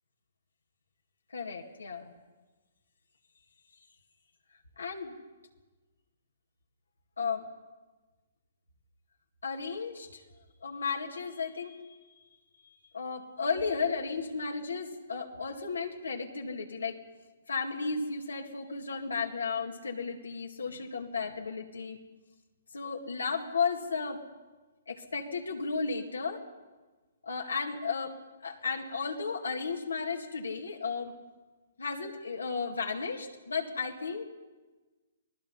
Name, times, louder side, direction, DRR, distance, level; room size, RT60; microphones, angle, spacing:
voice 1, 1.3-2.1 4.8-5.1 7.2-7.5 9.4-10.2 10.6-12.0 12.9-17.0 17.5-22.0 22.7-24.2 24.9-26.4 27.2-31.1 31.8-34.3, left 5 dB, 90° left, 2 dB, 2.1 m, -34 dB
28.5 x 18.5 x 5.6 m, 1.3 s
hypercardioid pair, 140°, 0 cm